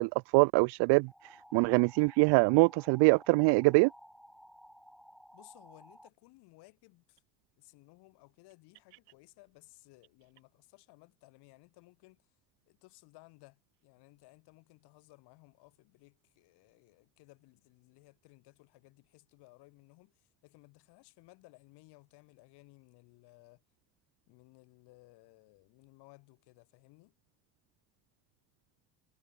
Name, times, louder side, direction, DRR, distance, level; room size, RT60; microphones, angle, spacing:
voice 1, 0.0-3.9, right 30 dB, 80° right, 0.6 m, -24 dB
sound 1, 1.1-6.1, equal, ahead, 2.6 m, -56 dB
voice 2, 5.3-7.2 7.6-12.3 12.7-23.6 24.3-27.1, left 23 dB, 80° left, 5.8 m, -60 dB
cardioid pair, 135°, 39 cm